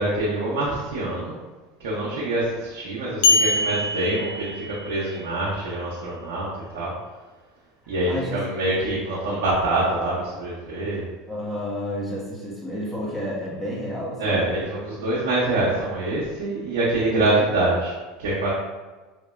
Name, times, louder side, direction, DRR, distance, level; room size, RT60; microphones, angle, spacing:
voice 1, 0.0-1.4 1.8-6.9 7.9-11.1 14.2-18.5, right 2 dB, 75° right, -7 dB, 0.7 m, -25 dB
sound 1, 3.2-5.1, left 2 dB, 70° left, 0.4 m, -22 dB
voice 2, 7.8-8.4 11.3-14.4, equal, 5° left, -6 dB, 0.8 m, -31 dB
3.0 x 2.6 x 2.3 m, 1.3 s
hypercardioid pair, 90°, 0 cm